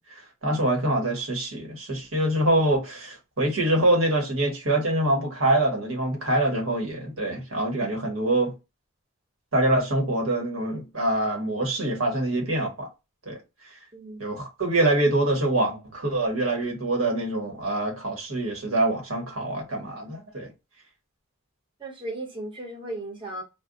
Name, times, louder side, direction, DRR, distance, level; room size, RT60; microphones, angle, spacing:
voice 1, 0.4-8.5 9.5-12.9 13.3-13.4 14.2-20.5, right 1 dB, 80° right, 1.3 m, -25 dB
voice 2, 13.9-14.2 21.8-23.4, right 1 dB, 25° right, 1.2 m, -36 dB
2.4 x 2.3 x 3.7 m
head